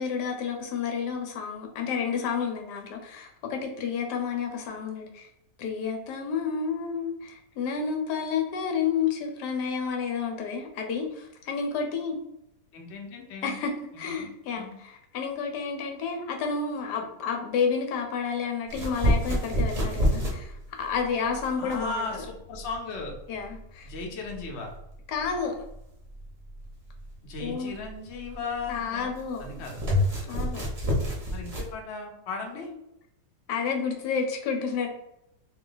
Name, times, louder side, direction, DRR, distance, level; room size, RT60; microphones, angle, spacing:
voice 1, 0.0-5.3 5.6-12.2 13.4-13.7 14.0-22.2 23.3-23.9 25.1-25.5 27.4-27.8 28.7-29.6 30.3-30.6 33.5-34.9, left 6 dB, 80° left, 3 dB, 1.2 m, -30 dB
voice 2, 12.7-13.6 13.9-14.3 14.6-14.8 21.6-23.1 23.8-24.7 27.2-29.1 29.4-29.8 31.3-32.7, left 3 dB, 55° left, 1 dB, 0.9 m, -36 dB
sound 1, 18.7-31.7, equal, 30° right, 0.9 m, -30 dB
3.1 x 2.8 x 3.8 m, 0.83 s
omnidirectional pair, 1.8 m